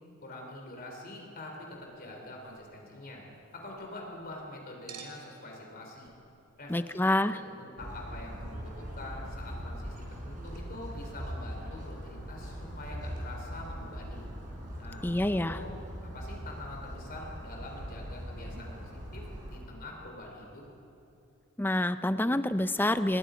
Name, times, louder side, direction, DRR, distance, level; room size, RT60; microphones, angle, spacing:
voice 1, 0.2-3.3 3.5-6.1 6.6-7.0 7.3-14.3 14.8-15.8 16.1-20.6, left 1 dB, 40° left, 0 dB, 3.6 m, -45 dB
Chink clink, 1.5-4.4 4.9-10.3 10.5-10.6, right 6 dB, 85° right, 2.8 m, -56 dB
voice 2, 6.7-7.4 15.0-15.6 21.6-23.2, left 1 dB, 10° left, 11 dB, 0.5 m, -27 dB
sound 1, 7.8-19.6, equal, 40° right, 4.2 m, -41 dB
28.0 x 20.5 x 5.1 m, 2.7 s
head